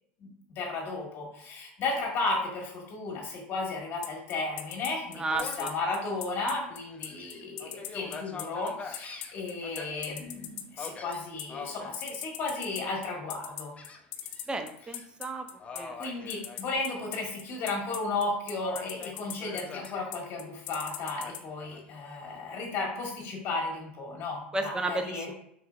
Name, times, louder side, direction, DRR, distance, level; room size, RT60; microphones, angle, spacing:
voice 1, 0.2-13.7 16.0-25.3, left 3 dB, 45° left, -1 dB, 1.7 m, -34 dB
sound 1, 4.0-21.4, left 12 dB, 70° left, 0.5 m, -39 dB
voice 2, 5.2-5.7 14.5-15.5 15.8-15.9 24.5-25.3, right 2 dB, 15° right, 6 dB, 0.6 m, -33 dB
Gull seagull, 5.3-5.8 6.3-6.4 6.9-9.9 10.8-11.9 12.4-12.9 13.8-14.5 14.8-15.0 15.6-17.1 17.5-18.2 18.6-20.0 21.2-22.2, left 4 dB, 25° left, 0.7 m, -44 dB
4.3 x 4.0 x 2.4 m, 0.72 s
hypercardioid pair, 90°, 5 cm